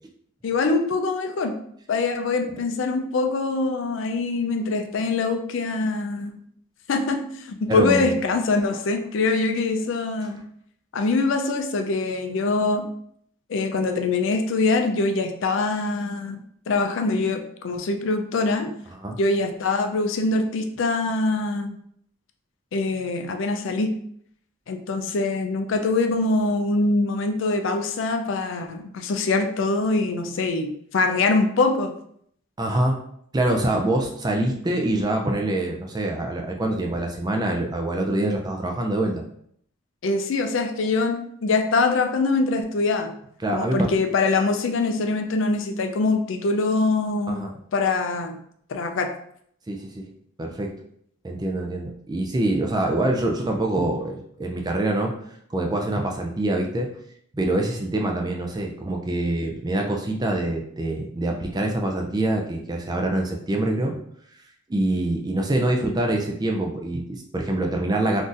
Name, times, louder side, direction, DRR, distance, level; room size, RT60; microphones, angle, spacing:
voice 1, 0.4-1.5 1.9-6.3 6.9-10.4 10.9-12.8 13.5-18.7 19.2-21.7 22.7-23.9 24.7-31.9 40.0-43.1 43.5-48.4 48.7-49.1, left 3 dB, 60° left, 5 dB, 0.4 m, -23 dB
voice 2, 7.7-8.2 8.7-8.8 19.0-19.2 32.6-33.0 33.3-39.2 43.4-43.9 47.3-47.5 49.7-50.1 50.4-50.8 51.2-55.2 55.5-57.0 57.3-64.0 64.7-68.2, right 1 dB, 20° right, 2 dB, 0.3 m, -25 dB
3.8 x 2.6 x 2.4 m, 0.67 s
head